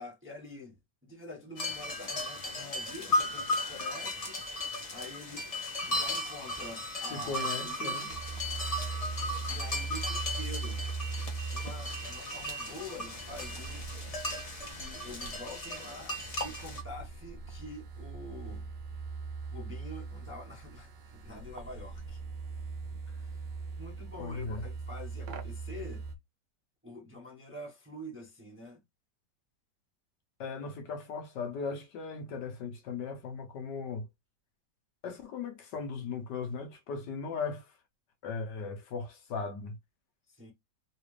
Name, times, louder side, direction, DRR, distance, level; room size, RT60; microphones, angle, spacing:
voice 1, 0.0-4.4 4.9-5.5 5.9-8.2 9.5-10.8 11.5-13.8 14.7-18.7 19.5-22.2 23.1-26.0 26.8-28.8 40.3-40.5, left 2 dB, 10° right, 0.8 m, -46 dB
sound 1, 1.6-16.8, left 1 dB, 40° left, 0.5 m, -36 dB
voice 2, 7.1-8.1 24.2-24.6 30.4-34.1 35.0-37.7 38.2-39.7, left 5 dB, 75° left, 1.5 m, -37 dB
sound 2, 8.1-26.2, right 4 dB, 90° right, 0.5 m, -41 dB
3.8 x 2.5 x 3.1 m
omnidirectional pair, 1.8 m